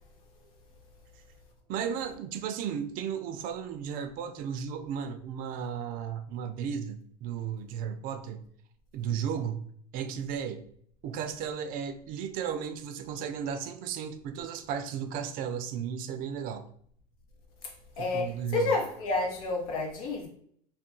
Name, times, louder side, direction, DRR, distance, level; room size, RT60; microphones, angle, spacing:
voice 1, 1.7-8.4 8.9-9.6 9.9-10.6 11.0-16.6 18.0-18.8, right 8 dB, 50° right, 0.4 m, -34 dB
voice 2, 18.0-20.3, left 3 dB, 85° left, 0.9 m, -30 dB
2.3 x 2.3 x 3.7 m
supercardioid pair, 125°, 18 cm